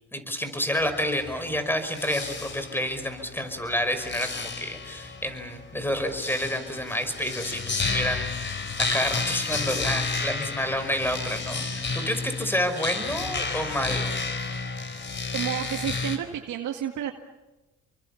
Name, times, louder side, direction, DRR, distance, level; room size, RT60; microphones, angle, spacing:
voice 1, 0.1-14.1, equal, 5° left, 9 dB, 5.4 m, -29 dB
sound 1, 0.8-16.2, left 4 dB, 40° left, 4.5 m, -32 dB
voice 2, 15.3-17.1, right 10 dB, 80° right, 3 dB, 2.0 m, -30 dB
29.0 x 23.5 x 7.2 m, 1.1 s
cardioid pair, 90°, 30 cm